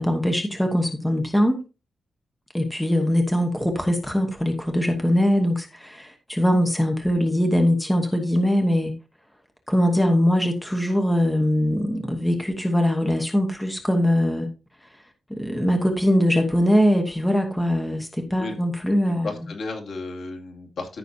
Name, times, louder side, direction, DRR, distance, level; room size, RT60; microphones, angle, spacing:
voice 1, 0.0-1.6 2.5-8.9 9.7-14.5 15.3-19.5, equal, 5° left, 1.1 m, -22 dB
voice 2, 19.0-21.0, left 3 dB, 65° left, 2.3 m, -34 dB
14.0 x 6.0 x 2.7 m
wide cardioid pair, 180°, 0 cm